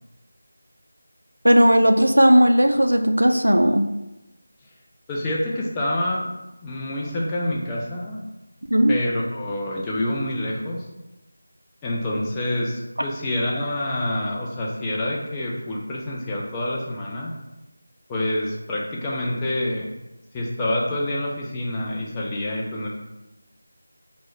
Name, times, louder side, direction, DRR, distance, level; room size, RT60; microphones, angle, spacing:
voice 1, 1.4-3.9 8.7-9.0, equal, 85° right, 6 dB, 0.3 m, -16 dB
voice 2, 5.1-6.3 6.6-8.2 8.9-10.9 11.8-17.3 18.1-19.9 20.3-22.9, left 1 dB, 15° left, -4 dB, 0.4 m, -27 dB
3.0 x 2.1 x 3.4 m, 1.0 s
figure-of-eight pair, 165°, 0 cm